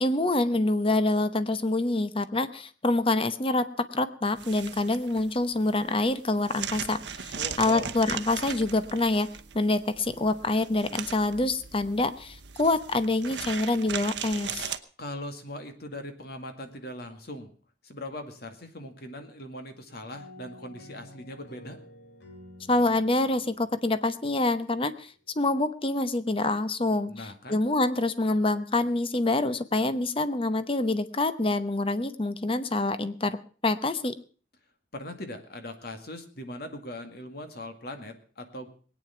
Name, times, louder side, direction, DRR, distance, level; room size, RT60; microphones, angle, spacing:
voice 1, 0.0-3.7 3.9-9.3 9.5-14.7 22.7-33.4 33.6-34.1, left 2 dB, 30° left, 13 dB, 0.8 m, -26 dB
sound 1, 4.4-14.8, right 8 dB, 65° right, 0.9 m, -39 dB
voice 2, 7.4-7.9 15.0-17.5 17.8-21.8 27.1-27.6 34.9-38.7, left 1 dB, 55° left, 7 dB, 2.1 m, -40 dB
sound 2, 20.1-24.7, left 1 dB, 75° left, 3.0 m, -50 dB
20.5 x 9.3 x 5.8 m, 0.41 s
head